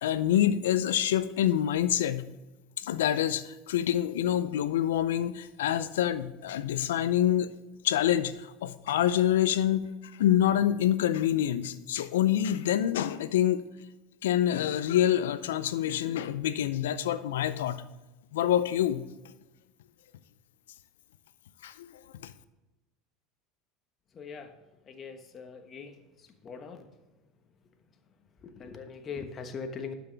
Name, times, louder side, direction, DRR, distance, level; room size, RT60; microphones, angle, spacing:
voice 1, 0.0-2.2 2.8-7.5 7.8-13.6 14.2-17.8 18.3-19.0 21.6-21.9, left 11 dB, 80° left, 14 dB, 0.5 m, -26 dB
voice 2, 24.1-24.5 24.9-26.0 26.4-26.9 28.4-29.9, left 5 dB, 35° left, 6 dB, 1.2 m, -41 dB
11.5 x 6.1 x 3.4 m, 1.1 s
hypercardioid pair, 85°, 0 cm